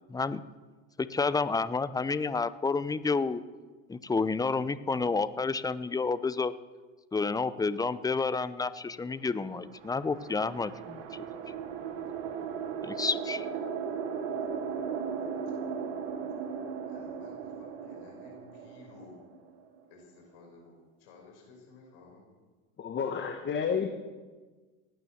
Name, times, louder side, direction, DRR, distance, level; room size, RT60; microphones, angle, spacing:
voice 1, 0.1-0.4 1.0-3.4 3.9-6.5 7.1-11.0 12.8-13.5, left 4 dB, 10° left, 15 dB, 0.6 m, -30 dB
sound 1, 9.4-19.8, right 6 dB, 65° right, 2.4 m, -37 dB
voice 2, 16.3-19.2 19.9-22.2 23.3-23.5, left 3 dB, 65° left, 1 dB, 5.6 m, -55 dB
voice 3, 22.8-23.9, left 6 dB, 30° left, 6 dB, 1.3 m, -30 dB
17.5 x 9.6 x 7.1 m, 1.4 s
hypercardioid pair, 90°, 37 cm